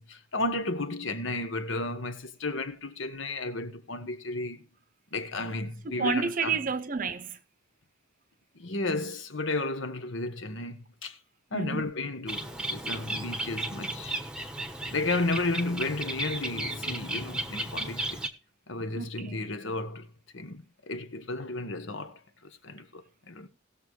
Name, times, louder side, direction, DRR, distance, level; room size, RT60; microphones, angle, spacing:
voice 1, 0.0-4.6 5.1-6.6 8.5-11.2 11.5-14.2 14.9-18.2 18.7-20.1 20.3-23.5, left 2 dB, 65° left, 1.3 m, -33 dB
voice 2, 6.0-7.4 11.5-11.8 19.0-19.1, right 5 dB, 40° right, 0.7 m, -29 dB
Bird, 12.3-18.3, right 1 dB, 5° right, 1.1 m, -34 dB
18.5 x 7.0 x 3.2 m
head